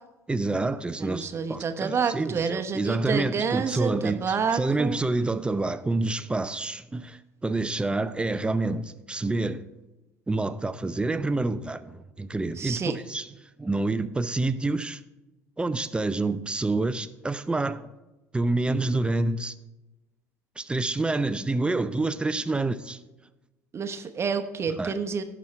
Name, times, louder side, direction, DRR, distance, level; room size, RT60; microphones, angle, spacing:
voice 1, 0.3-9.7 10.3-12.8 13.1-13.3 13.6-15.0 15.6-17.9 18.3-19.5 20.6-23.0 24.8-24.9, right 2 dB, 10° right, 0.6 m, -27 dB
voice 2, 1.0-5.0 12.6-13.0 23.7-25.2, right 6 dB, 30° right, 1.0 m, -28 dB
17.0 x 6.2 x 3.3 m
figure-of-eight pair, 60°, 8 cm